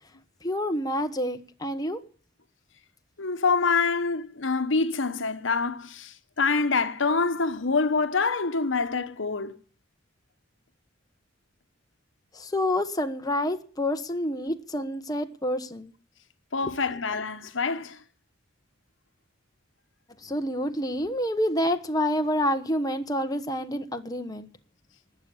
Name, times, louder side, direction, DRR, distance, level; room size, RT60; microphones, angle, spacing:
voice 1, 0.4-2.0 12.3-15.9 20.2-24.5, left 1 dB, 20° left, 1.2 m, -28 dB
voice 2, 3.2-9.6 16.5-18.0, left 4 dB, 75° left, 1.1 m, -26 dB
19.5 x 7.3 x 9.8 m
head